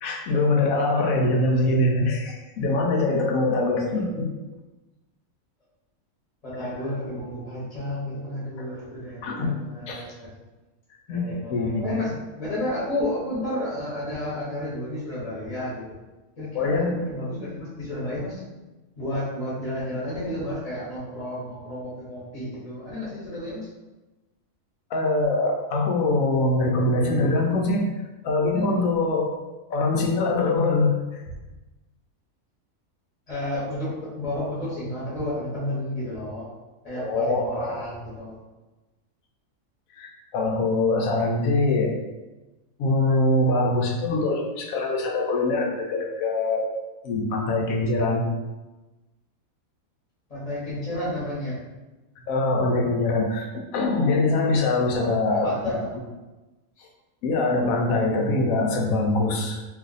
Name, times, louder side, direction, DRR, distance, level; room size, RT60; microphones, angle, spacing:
voice 1, 0.0-4.3 8.6-8.7 9.2-9.6 9.9-10.0 11.1-12.0 16.5-17.0 24.9-27.9 28.2-29.3 29.7-31.2 36.9-37.7 39.9-41.9 42.8-46.7 47.0-48.3 52.3-55.5 57.2-59.6, left 2 dB, 80° left, 0 dB, 1.0 m, -23 dB
voice 2, 6.4-10.3 11.1-15.8 16.4-18.4 18.9-23.7 33.3-36.5 36.8-38.3 50.3-51.6 54.9-55.9, left 1 dB, 30° left, -11 dB, 1.0 m, -31 dB
2.7 x 2.4 x 3.9 m, 1.1 s
omnidirectional pair, 1.5 m